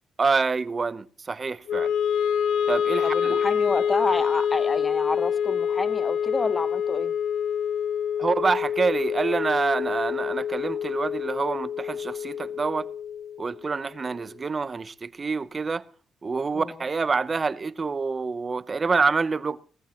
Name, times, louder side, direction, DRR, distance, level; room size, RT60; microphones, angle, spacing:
voice 1, 0.2-1.9 2.7-3.4 8.2-12.9 13.4-15.8 16.2-19.6, right 4 dB, 30° right, 0.8 m, -27 dB
Wind instrument woodwind instrument, 1.7-13.9, left 8 dB, 80° left, 1.3 m, -27 dB
voice 2, 3.0-7.1 16.5-16.8, left 3 dB, 25° left, 1.0 m, -29 dB
18.0 x 15.0 x 3.0 m
cardioid pair, 90°, 0 cm